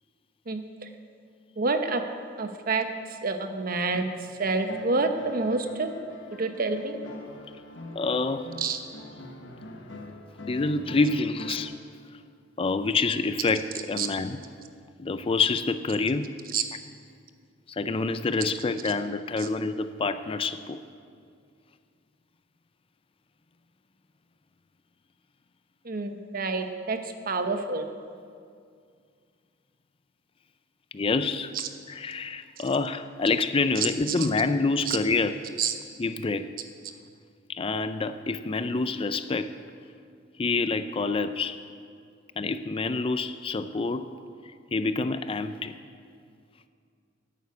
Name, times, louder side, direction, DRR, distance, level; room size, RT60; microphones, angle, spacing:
voice 1, 0.5-0.9 1.6-2.0 2.4-2.8 3.2-4.1 4.4-5.9 6.3-7.0 8.6-8.8 14.0-14.1 16.5-16.6 25.8-27.0 27.3-27.8 31.5-31.7 33.8-33.9 34.9-35.0 35.6-35.7, right 4 dB, 50° right, 7 dB, 1.0 m, -28 dB
sound 1, 4.4-11.6, left 2 dB, 70° left, 1.4 m, -44 dB
voice 2, 7.9-8.6 10.4-11.7 12.6-14.4 15.0-16.4 17.7-20.8 30.9-31.5 31.9-35.4 36.0-36.5 37.5-39.5 40.4-41.6 42.4-44.1 44.7-45.7, left 3 dB, 30° left, 11 dB, 0.4 m, -27 dB
11.0 x 9.2 x 8.3 m, 2.2 s
head